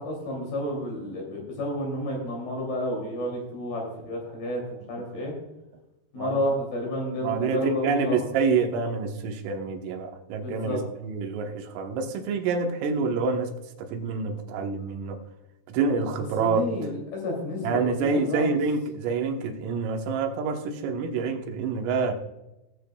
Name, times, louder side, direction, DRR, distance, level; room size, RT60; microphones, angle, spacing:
voice 1, 0.0-5.3 6.1-8.2 10.4-10.8 16.4-18.5, equal, 55° left, -1 dB, 4.3 m, -30 dB
voice 2, 7.2-10.8 11.0-13.5 13.8-15.2 15.7-16.7 17.6-22.1, right 4 dB, 90° right, 3 dB, 3.8 m, -27 dB
18.5 x 8.5 x 2.3 m, 0.98 s
omnidirectional pair, 5.7 m